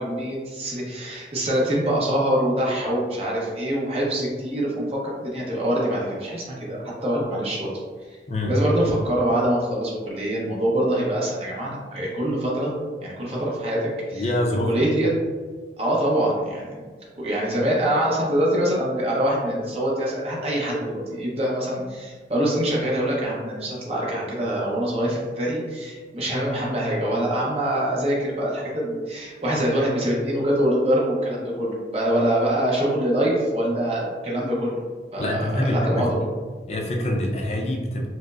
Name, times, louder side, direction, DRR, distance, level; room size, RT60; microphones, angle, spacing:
voice 1, 0.0-7.8 8.1-8.2 8.5-12.7 13.0-14.3 14.6-15.1 15.8-16.8 17.2-34.7 35.1-36.2, right 1 dB, 35° right, -4 dB, 0.8 m, -24 dB
voice 2, 14.1-14.8 35.2-36.3 36.7-38.1, left 1 dB, 35° left, 1 dB, 0.4 m, -25 dB
4.7 x 2.0 x 2.4 m, 1.5 s
head